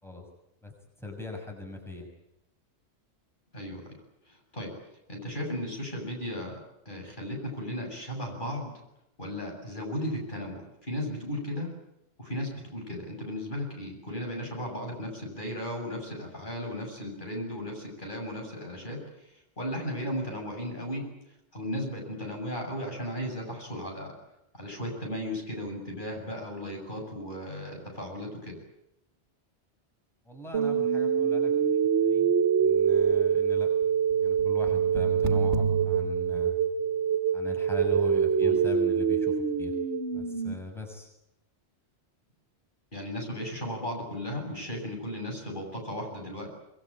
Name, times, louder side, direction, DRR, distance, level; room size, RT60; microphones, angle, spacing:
voice 1, 1.0-2.1 30.2-33.7 34.2-36.5 37.3-39.7 40.1-41.1, left 2 dB, ahead, 1 dB, 6.4 m, -41 dB
voice 2, 4.3-4.7 5.1-6.6 6.8-8.7 9.2-11.8 12.2-21.0 21.5-24.1 24.5-28.6 38.4-38.6 42.9-46.5, equal, 45° left, 1 dB, 7.9 m, -35 dB
sound 1, 30.5-40.5, right 7 dB, 85° right, 1.9 m, -25 dB
25.0 x 23.0 x 8.9 m, 0.86 s
omnidirectional pair, 1.2 m